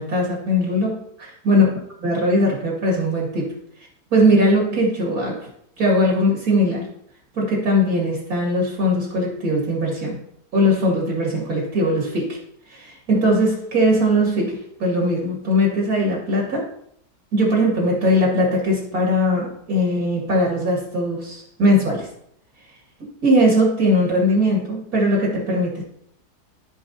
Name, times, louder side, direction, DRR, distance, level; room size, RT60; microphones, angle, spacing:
voice 1, 0.0-1.7 2.0-3.5 4.1-5.5 5.8-6.9 7.4-10.2 10.5-12.4 12.7-16.7 17.3-22.1 23.2-25.8, equal, 65° right, -3 dB, 2.8 m, -20 dB
15.0 x 5.1 x 2.8 m, 0.72 s
omnidirectional pair, 1.7 m